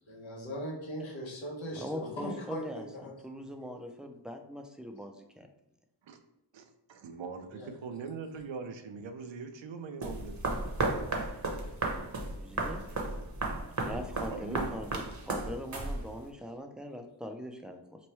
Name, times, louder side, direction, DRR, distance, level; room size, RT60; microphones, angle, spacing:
voice 1, 0.1-3.9 7.5-7.7, equal, 85° left, -1 dB, 1.0 m, -40 dB
voice 2, 1.7-5.5 12.3-12.8 13.8-18.0, equal, ahead, 5 dB, 0.4 m, -41 dB
voice 3, 6.5-10.6 14.3-14.7, right 5 dB, 80° right, 7 dB, 0.6 m, -42 dB
sound 1, 10.0-16.3, right 2 dB, 40° right, 0.8 m, -34 dB
3.0 x 2.2 x 4.2 m, 0.85 s
cardioid pair, 60°, 45 cm